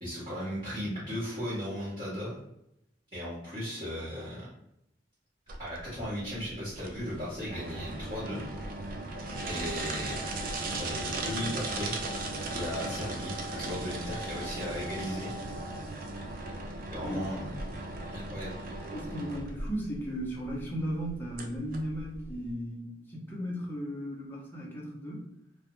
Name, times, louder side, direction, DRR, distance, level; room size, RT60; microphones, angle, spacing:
voice 1, 0.0-2.4 3.1-4.5 5.6-8.4 9.4-10.2 10.8-12.0 12.5-15.3 16.9-17.5 18.1-18.6, equal, 25° right, -12 dB, 0.8 m, -36 dB
sound 1, 5.5-22.5, right 2 dB, 50° right, 0.4 m, -37 dB
voice 2, 17.0-17.3 18.9-25.3, equal, 10° left, -3 dB, 0.6 m, -36 dB
2.3 x 2.0 x 2.9 m, 0.80 s
head